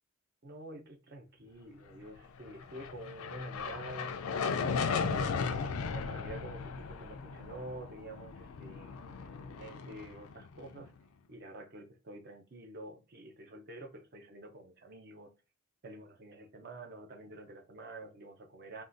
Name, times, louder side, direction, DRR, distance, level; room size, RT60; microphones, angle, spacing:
voice 1, 0.4-4.2 4.5-11.0 11.3-15.3 15.8-18.8, right 1 dB, 50° right, 0.6 m, -48 dB
sound 1, 2.5-10.9, left 5 dB, 80° left, 0.4 m, -36 dB
3.6 x 2.3 x 2.5 m
head